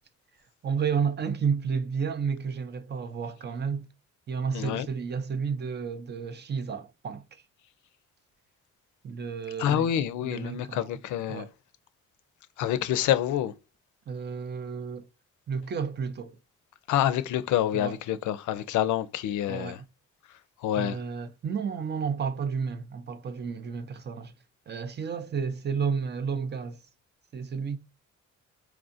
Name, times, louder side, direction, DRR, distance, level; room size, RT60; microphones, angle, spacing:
voice 1, 0.6-3.9 4.3-7.2 9.0-9.9 10.2-10.9 11.3-11.5 14.1-15.1 15.5-16.4 17.7-17.9 19.5-19.8 20.8-24.3 24.7-26.8 27.3-27.8, right 6 dB, 35° right, 0.6 m, -31 dB
voice 2, 4.5-4.9 9.6-11.5 12.6-13.5 16.9-19.8 20.6-21.0, left 11 dB, 80° left, 0.5 m, -27 dB
4.5 x 2.4 x 2.6 m
cardioid pair, 90°, 30 cm